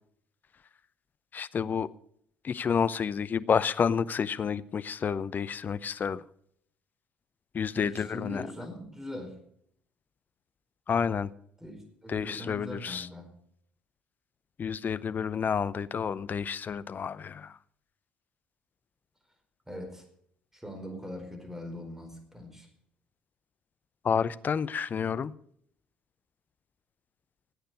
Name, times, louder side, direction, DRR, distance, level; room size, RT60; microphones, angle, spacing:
voice 1, 1.3-1.9 2.4-6.2 7.5-8.4 10.9-11.3 12.1-13.1 14.6-17.6 24.0-25.3, left 6 dB, 40° left, 17 dB, 0.7 m, -29 dB
voice 2, 7.7-9.4 11.6-13.3 19.7-20.1 20.5-22.7, left 1 dB, 10° right, 5 dB, 4.7 m, -41 dB
17.0 x 9.0 x 6.7 m, 0.67 s
hypercardioid pair, 55°, 5 cm